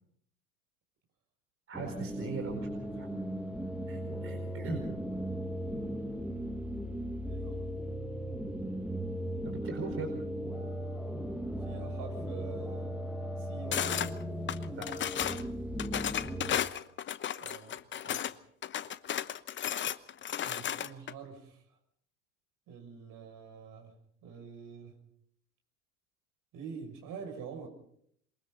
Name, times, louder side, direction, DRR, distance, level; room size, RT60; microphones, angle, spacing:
sound 1, 1.7-16.6, equal, 5° right, 1.6 m, -37 dB
voice 1, 1.7-3.1 3.9-4.8 9.4-10.2 14.8-15.0, right 4 dB, 30° right, 4 dB, 4.7 m, -40 dB
voice 2, 7.3-7.8 11.6-13.0 13.4-14.2 17.4-18.2 20.4-21.6 22.7-23.9 24.2-25.0 26.5-27.7, right 6 dB, 50° right, 4 dB, 6.9 m, -46 dB
sound 2, 13.7-14.1 14.5-15.4 15.8-18.3 18.6-21.1, left 10 dB, 25° left, 1.0 m, -34 dB
27.5 x 23.0 x 4.1 m, 0.66 s
hypercardioid pair, 80°, 43 cm